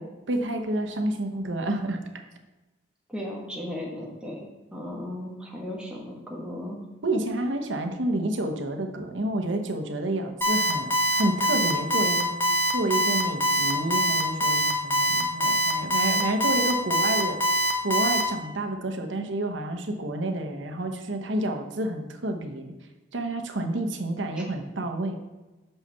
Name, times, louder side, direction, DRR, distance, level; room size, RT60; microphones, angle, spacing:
voice 1, 0.0-2.0 7.0-12.3 12.7-17.4 17.8-22.7 23.1-25.2, right 1 dB, 90° right, 5 dB, 0.9 m, -29 dB
voice 2, 3.1-6.8, left 1 dB, 5° right, -3 dB, 1.4 m, -36 dB
Alarm, 10.4-18.2, equal, 10° left, 1.1 m, -23 dB
5.7 x 5.6 x 6.8 m, 1.1 s
head